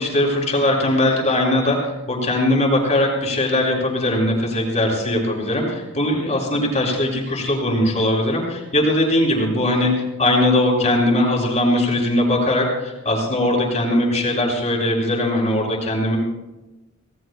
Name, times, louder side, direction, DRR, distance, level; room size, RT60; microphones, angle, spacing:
voice 1, 0.0-9.9 10.2-16.2, left 1 dB, 35° left, 0 dB, 6.0 m, -20 dB
29.0 x 19.5 x 2.3 m, 1.0 s
head